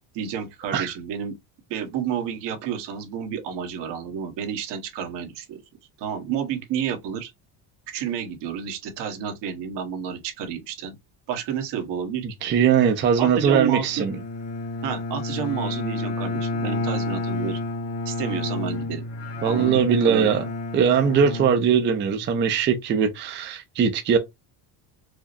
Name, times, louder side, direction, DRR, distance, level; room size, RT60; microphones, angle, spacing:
voice 1, 0.1-1.3 1.7-5.6 6.0-7.3 7.9-11.0 11.3-12.3 13.2-14.0 14.8-17.6 18.0-19.0 19.4-20.4, right 8 dB, 65° right, 1.3 m, -30 dB
voice 2, 12.4-14.2 19.4-20.4 20.7-24.2, right 7 dB, 25° right, 0.5 m, -20 dB
Bowed string instrument, 13.8-22.3, left 2 dB, 35° left, 1.1 m, -30 dB
4.8 x 2.0 x 2.6 m
cardioid pair, 150°, 45 cm